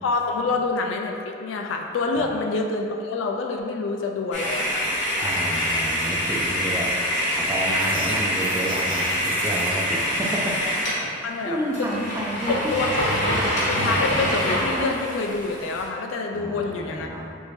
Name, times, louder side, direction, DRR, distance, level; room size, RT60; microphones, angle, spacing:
voice 1, 0.0-4.9 11.2-11.9 12.5-12.9 13.3-13.4 13.7-17.1, left 3 dB, 80° left, 2 dB, 0.3 m, -27 dB
sound 1, 4.3-11.0 11.4-11.5 11.7-15.9, equal, 35° left, 0.7 m, -25 dB
voice 2, 5.2-6.9 7.4-10.6 11.0-11.1 11.4-12.6 13.3-13.4 16.3-17.4, equal, 15° right, -4 dB, 0.3 m, -30 dB
sound 2, 7.7-9.9, right 4 dB, 85° right, 0.4 m, -38 dB
3.2 x 2.6 x 3.1 m, 2.5 s
head